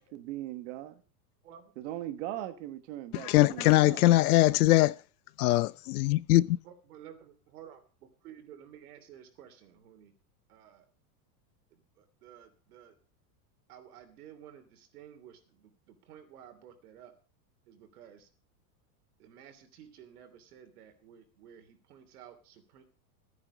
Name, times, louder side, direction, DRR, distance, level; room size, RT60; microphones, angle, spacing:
voice 1, 0.1-1.0 1.8-4.1, right 13 dB, 45° right, 1.3 m, -39 dB
voice 2, 3.1-5.0 5.4-6.6, left 16 dB, 70° left, 0.6 m, -22 dB
voice 3, 6.6-10.1 10.5-10.8 11.7-13.0 13.7-17.1 17.7-18.3 19.2-22.8, right 9 dB, 70° right, 3.0 m, -53 dB
13.5 x 9.8 x 5.1 m
supercardioid pair, 175°, 46 cm